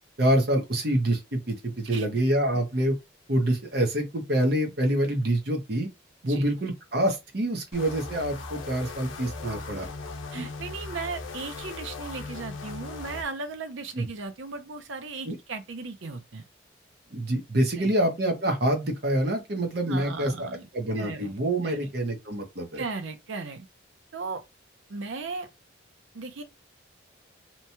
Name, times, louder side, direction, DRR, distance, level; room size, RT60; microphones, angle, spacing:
voice 1, 0.2-3.0 3.3-5.9 6.2-9.9 10.3-10.5 13.9-14.1 15.3-15.4 17.1-20.5 20.7-22.8, right 1 dB, 55° right, 0.9 m, -26 dB
sound 1, 7.7-13.2, left 3 dB, 90° left, 0.6 m, -38 dB
voice 2, 10.3-16.4 17.7-17.9 19.9-20.7 21.0-21.3 21.6-21.9 22.7-23.7 24.1-24.4 24.9-25.5 26.1-26.4, right 4 dB, 80° right, 0.6 m, -36 dB
2.9 x 2.2 x 2.8 m
head